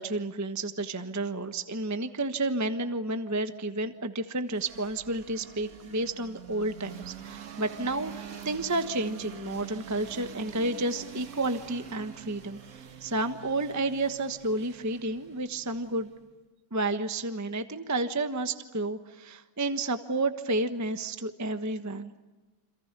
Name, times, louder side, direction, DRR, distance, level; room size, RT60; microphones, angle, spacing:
voice 1, 0.0-12.6 13.0-16.1 16.7-22.1, right 2 dB, 10° right, 8 dB, 1.0 m, -31 dB
sound 1, 4.5-16.3, right 8 dB, 50° right, 1.6 m, -45 dB
29.0 x 27.0 x 6.8 m, 1.2 s
omnidirectional pair, 2.1 m